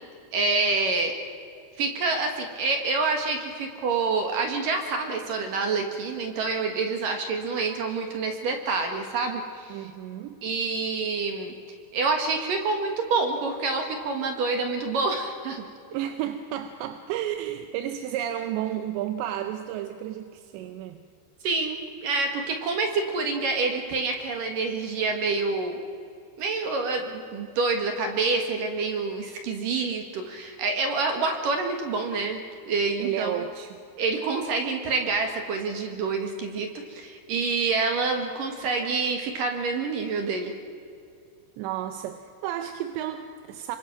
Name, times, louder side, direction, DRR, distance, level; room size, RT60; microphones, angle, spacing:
voice 1, 0.3-1.1 1.8-9.9 10.4-11.5 11.9-15.7 21.4-25.8 26.4-33.4 34.0-40.5, right 4 dB, 60° right, 4 dB, 2.5 m, -27 dB
voice 2, 9.7-10.4 15.9-21.0 33.0-33.8 41.6-43.8, right 11 dB, 75° right, 7 dB, 2.9 m, -32 dB
26.0 x 24.5 x 6.0 m, 2.5 s
omnidirectional pair, 5.7 m